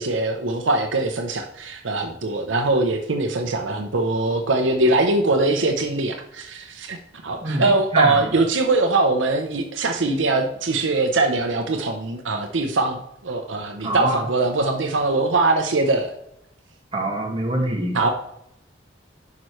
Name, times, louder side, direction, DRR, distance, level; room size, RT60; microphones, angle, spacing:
voice 1, 0.0-7.0 7.2-16.1 17.9-18.1, right 2 dB, 80° right, 4 dB, 0.8 m, -22 dB
voice 2, 7.4-8.2 13.8-14.2 16.9-18.0, right 1 dB, 30° right, -1 dB, 1.8 m, -24 dB
10.5 x 6.0 x 3.2 m, 0.78 s
head